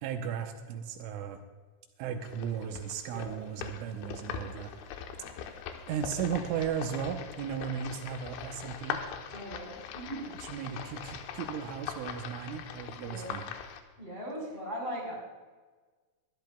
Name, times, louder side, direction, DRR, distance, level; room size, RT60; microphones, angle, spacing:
voice 1, 0.0-1.4 2.0-4.7 5.4-5.6 5.9-9.0 10.5-13.4, right 8 dB, 80° right, 5 dB, 3.2 m, -36 dB
sound 1, 2.2-13.8, left 8 dB, 80° left, 3.3 m, -41 dB
voice 2, 9.3-10.2 13.0-13.4 14.0-15.1, equal, 10° left, -3 dB, 3.3 m, -39 dB
22.5 x 13.5 x 2.3 m, 1.4 s
omnidirectional pair, 5.6 m